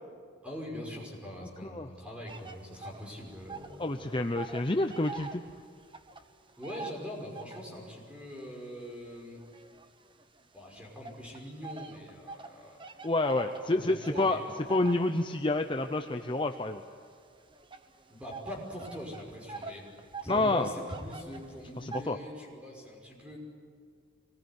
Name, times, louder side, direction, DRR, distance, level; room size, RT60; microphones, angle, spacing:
voice 1, 0.4-4.4 6.6-9.4 10.5-12.8 13.6-14.7 18.1-19.9 20.2-23.4, left 1 dB, 5° right, -1 dB, 5.6 m, -43 dB
sound 1, 2.3-3.8 4.1-7.8 8.4-10.4 11.0-22.1, right 4 dB, 25° right, 1.1 m, -45 dB
voice 2, 3.8-5.4 13.0-14.4 14.7-16.8 20.3-20.7 21.8-22.2, left 2 dB, 25° left, 6 dB, 0.7 m, -28 dB
24.5 x 20.0 x 9.6 m, 2.1 s
head